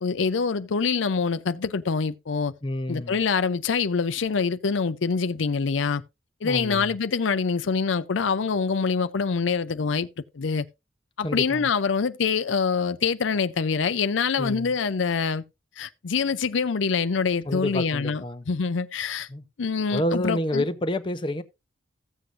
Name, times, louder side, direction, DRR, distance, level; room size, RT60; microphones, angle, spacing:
voice 1, 0.0-2.5 2.9-6.0 6.4-10.1 10.3-10.6 11.2-15.4 15.8-19.3 19.6-20.6, left 5 dB, 75° left, 0.5 m, -25 dB
voice 2, 2.6-3.2 6.4-6.9 11.2-11.7 14.4-14.7 17.5-18.4 19.3-19.4 19.9-21.4, left 1 dB, 25° left, 0.6 m, -28 dB
15.0 x 7.8 x 2.6 m
head